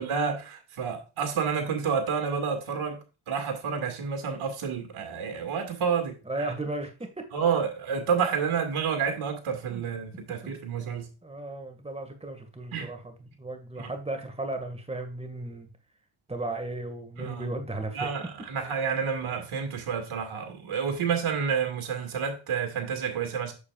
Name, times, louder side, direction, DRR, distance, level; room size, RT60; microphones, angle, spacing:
voice 1, 0.0-6.5 7.3-11.1 12.7-12.9 13.8-13.9 17.2-17.5 17.9-23.5, right 6 dB, 75° right, 2.3 m, -29 dB
voice 2, 6.3-7.3 9.7-9.8 11.2-15.7 16.3-18.3, right 2 dB, 10° right, 2.0 m, -35 dB
8.6 x 6.9 x 2.5 m
cardioid pair, 70°, 50 cm